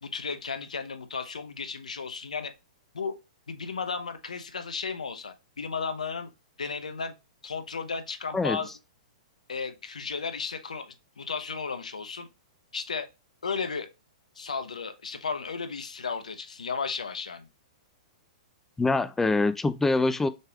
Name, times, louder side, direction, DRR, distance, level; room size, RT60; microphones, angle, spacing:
voice 1, 0.0-2.5 2.9-3.1 3.5-6.3 6.6-7.2 7.4-8.7 9.5-12.3 12.7-13.1 13.4-13.9 14.4-17.5, left 5 dB, 80° left, 0.8 m, -34 dB
voice 2, 18.8-20.3, left 3 dB, 10° left, 0.5 m, -24 dB
6.5 x 3.4 x 2.3 m
hypercardioid pair, 110°, 4 cm